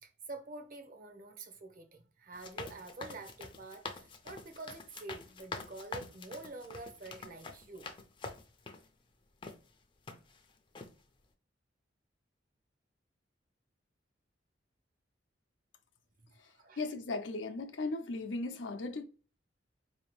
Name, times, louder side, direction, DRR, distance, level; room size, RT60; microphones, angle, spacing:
voice 1, 0.0-7.9 16.6-16.9, right 3 dB, 50° right, 0.7 m, -47 dB
sound 1, 2.3-8.9 9.4-9.6 10.1-10.5 10.8-10.9, left 3 dB, 25° left, 0.4 m, -46 dB
voice 2, 16.4-19.0, left 3 dB, 85° left, 0.5 m, -37 dB
4.1 x 2.7 x 3.0 m
head